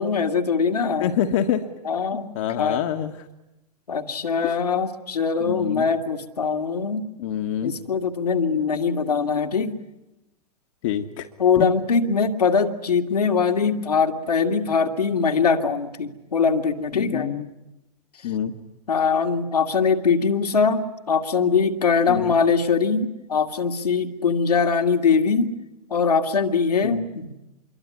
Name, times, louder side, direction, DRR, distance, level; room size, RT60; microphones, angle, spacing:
voice 1, 0.0-1.1 1.9-2.3 2.6-2.8 3.9-7.1 7.6-9.7 11.4-17.3 18.9-25.5 25.9-27.3, left 5 dB, 75° left, 4 dB, 2.2 m, -22 dB
voice 2, 1.0-1.7 2.1-3.1 4.4-4.5 5.4-5.8 7.2-7.7 10.8-11.3 11.6-11.7 16.9-17.5 18.2-18.5 22.1-22.3 26.8-27.1, left 9 dB, 55° left, 5 dB, 1.6 m, -26 dB
26.5 x 23.0 x 9.7 m, 0.97 s
figure-of-eight pair, 95°, 20 cm